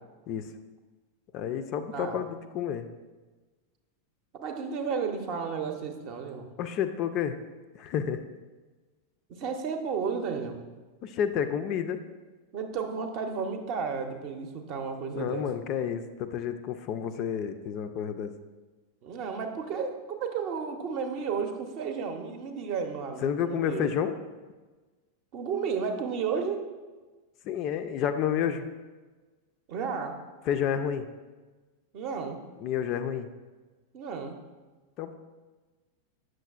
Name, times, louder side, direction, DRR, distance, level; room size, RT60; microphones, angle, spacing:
voice 1, 1.3-2.9 6.6-7.4 7.7-8.2 11.0-12.0 15.2-18.3 23.2-24.2 27.4-28.7 30.5-31.1 32.6-33.3 35.0-35.1, left 8 dB, 40° left, 9 dB, 0.3 m, -30 dB
voice 2, 4.4-6.5 9.3-10.6 12.5-15.4 19.0-23.9 25.3-26.6 29.7-30.2 31.9-32.4 33.9-34.3, right 6 dB, 45° right, 6 dB, 0.7 m, -33 dB
7.5 x 6.2 x 2.4 m, 1.3 s
figure-of-eight pair, 90°, 0 cm